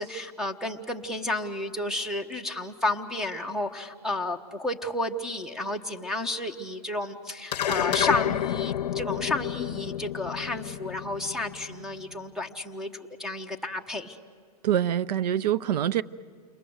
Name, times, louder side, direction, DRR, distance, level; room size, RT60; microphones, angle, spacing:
voice 1, 0.0-14.2, left 2 dB, 5° right, 1.0 m, -32 dB
sound 1, 7.5-12.1, left 11 dB, 90° left, 0.6 m, -30 dB
voice 2, 14.6-16.0, right 10 dB, 80° right, 0.6 m, -25 dB
29.0 x 22.0 x 7.9 m
hypercardioid pair, 135°, 20 cm